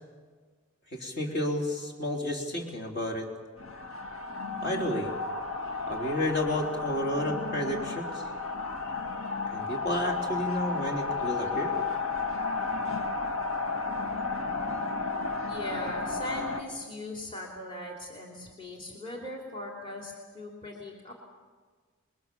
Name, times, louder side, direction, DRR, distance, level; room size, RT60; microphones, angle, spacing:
voice 1, 0.9-3.3 4.6-5.1 5.9-8.2 9.5-11.8, left 1 dB, 50° left, 1 dB, 3.8 m, -31 dB
sound 1, 3.6-16.6, left 4 dB, 80° left, 1.8 m, -33 dB
voice 2, 15.5-21.1, left 1 dB, 25° left, -2 dB, 2.9 m, -39 dB
28.0 x 21.5 x 7.1 m, 1.5 s
head